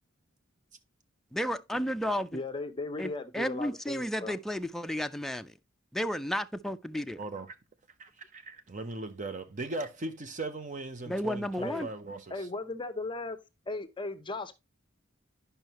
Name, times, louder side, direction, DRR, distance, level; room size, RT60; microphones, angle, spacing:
voice 1, 1.3-2.4 3.0-5.5 5.9-7.2 11.1-11.9, equal, ahead, 0.3 m, -32 dB
voice 2, 2.3-4.3 11.6-11.9 12.3-13.4 13.7-14.5, left 2 dB, 25° left, 0.7 m, -37 dB
voice 3, 7.2-7.6 8.0-12.3, right 2 dB, 40° right, 0.6 m, -38 dB
11.0 x 5.5 x 2.9 m
head